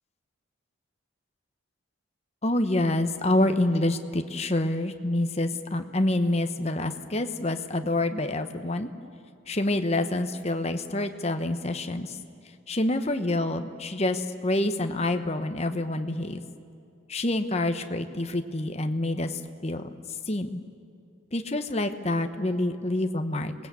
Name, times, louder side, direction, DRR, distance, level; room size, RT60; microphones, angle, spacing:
voice 1, 2.4-8.9 9.5-12.2 12.7-16.4 17.1-19.9 20.3-20.6 21.3-23.5, left 1 dB, 30° left, 7 dB, 1.0 m, -27 dB
28.0 x 19.5 x 8.4 m, 2.5 s
head